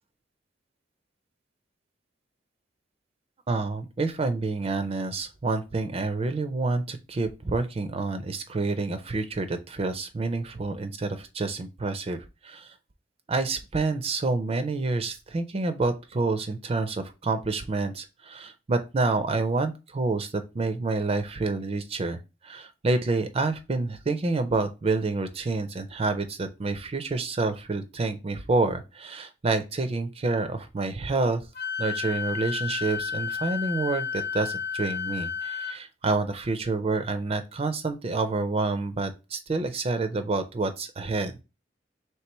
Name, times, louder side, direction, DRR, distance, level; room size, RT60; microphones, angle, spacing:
voice 1, 3.5-12.8 13.3-31.4 31.8-41.3, right 3 dB, 30° right, 9 dB, 0.4 m, -28 dB
Wind instrument woodwind instrument, 31.5-35.8, left 6 dB, 55° left, 0.6 m, -32 dB
3.3 x 3.0 x 4.4 m, 0.28 s
head